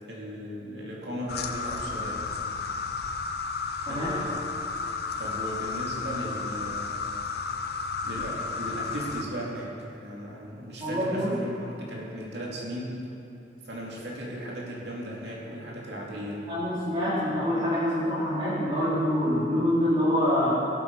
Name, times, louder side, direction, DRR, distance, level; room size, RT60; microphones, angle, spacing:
voice 1, 0.0-2.2 3.9-4.3 5.2-7.0 8.0-13.0 13.6-16.5, equal, 70° right, -4 dB, 2.6 m, -36 dB
sound 1, 1.3-9.2, left 4 dB, 60° left, 0.7 m, -33 dB
voice 2, 10.8-11.3 16.5-20.5, equal, 25° right, -12 dB, 3.1 m, -25 dB
17.5 x 7.8 x 4.8 m, 2.8 s
head